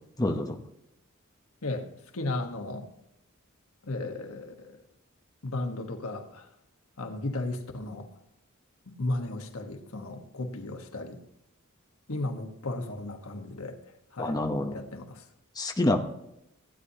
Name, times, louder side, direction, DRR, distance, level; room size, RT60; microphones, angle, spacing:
voice 1, 0.2-0.6 14.2-14.8 15.6-16.0, left 1 dB, 20° left, 3 dB, 0.8 m, -27 dB
voice 2, 2.1-2.9 3.9-4.7 5.4-6.4 7.0-8.1 8.9-11.2 12.1-13.8 14.1-14.4 14.7-15.2, left 2 dB, 90° left, 4 dB, 1.3 m, -34 dB
15.5 x 9.4 x 2.8 m, 0.83 s
head